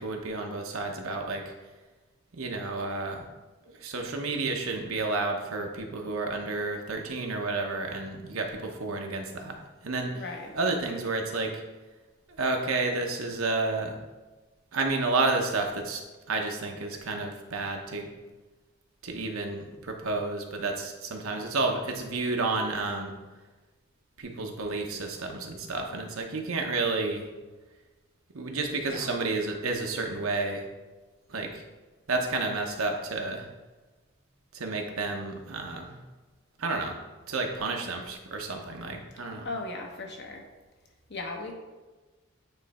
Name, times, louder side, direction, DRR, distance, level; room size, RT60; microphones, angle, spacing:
voice 1, 0.0-1.4 2.3-3.2 3.8-9.6 9.8-10.1 10.5-11.6 12.4-14.0 14.7-16.0 16.3-18.1 19.0-23.1 24.2-27.3 28.3-30.6 31.3-31.6 32.1-33.4 34.5-36.0 36.6-37.0 37.3-39.5, right 3 dB, 85° right, 2 dB, 0.9 m, -31 dB
voice 2, 10.1-10.6 28.9-29.1 39.4-40.4 41.1-41.5, left 2 dB, 50° left, 2 dB, 1.0 m, -37 dB
8.9 x 3.3 x 4.2 m, 1.2 s
head